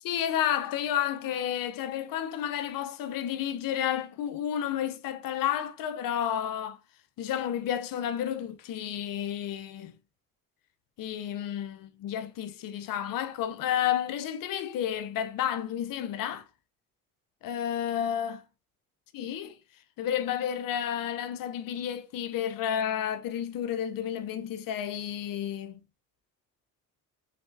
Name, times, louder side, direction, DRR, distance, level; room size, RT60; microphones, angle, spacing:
voice 1, 0.0-6.8 7.2-10.0 11.0-16.5 17.4-18.4 19.1-19.6 20.0-25.8, left 10 dB, 65° left, 0.6 m, -31 dB
3.4 x 3.2 x 2.5 m
supercardioid pair, 60°, 36 cm